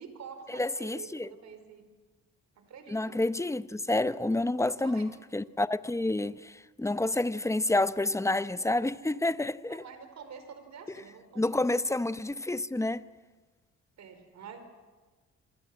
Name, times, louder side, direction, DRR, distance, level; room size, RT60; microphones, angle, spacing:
voice 1, 0.0-1.8 2.5-3.2 4.5-5.1 9.7-11.7 14.0-14.6, right 6 dB, 65° right, 4.9 m, -47 dB
voice 2, 0.5-1.3 2.9-9.8 11.4-13.0, left 2 dB, 10° left, 0.9 m, -29 dB
27.0 x 25.5 x 7.8 m
cardioid pair, 90°, 30 cm